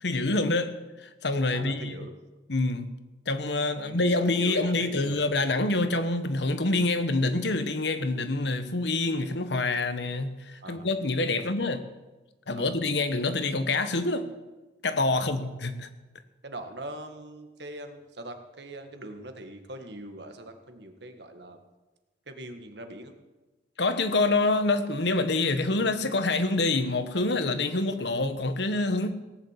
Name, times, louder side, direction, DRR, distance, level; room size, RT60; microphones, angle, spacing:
voice 1, 0.0-0.7 1.0-2.1 2.5-2.9 3.3-11.8 12.5-14.3 14.8-15.9 23.8-29.1, left 2 dB, 65° left, 1.2 m, -26 dB
voice 2, 1.5-2.1 3.8-5.2 10.6-10.8 11.4-11.5 12.5-12.8 15.1-15.4 16.4-21.6 22.3-23.1, right 1 dB, 65° right, 1.6 m, -42 dB
18.0 x 8.0 x 8.3 m
head